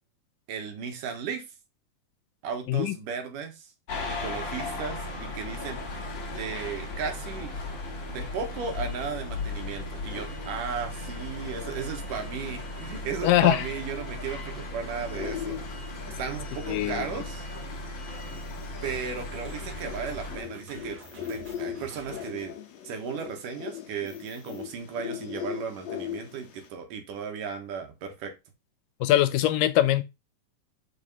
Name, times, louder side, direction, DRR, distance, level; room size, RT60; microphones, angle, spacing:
voice 1, 0.5-1.4 2.4-3.7 4.1-7.5 8.1-17.5 18.8-21.0 21.3-22.6 22.8-28.4, right 6 dB, 70° right, 3.0 m, -35 dB
sound 1, 3.9-20.4, left 2 dB, 45° left, 1.9 m, -36 dB
voice 2, 13.2-13.6 16.7-17.0 29.0-30.0, left 13 dB, 80° left, 2.2 m, -22 dB
sound 2, 15.1-26.7, left 10 dB, 60° left, 2.1 m, -40 dB
sound 3, 18.8-22.6, right 4 dB, 45° right, 2.3 m, -49 dB
6.3 x 5.0 x 5.4 m
omnidirectional pair, 3.9 m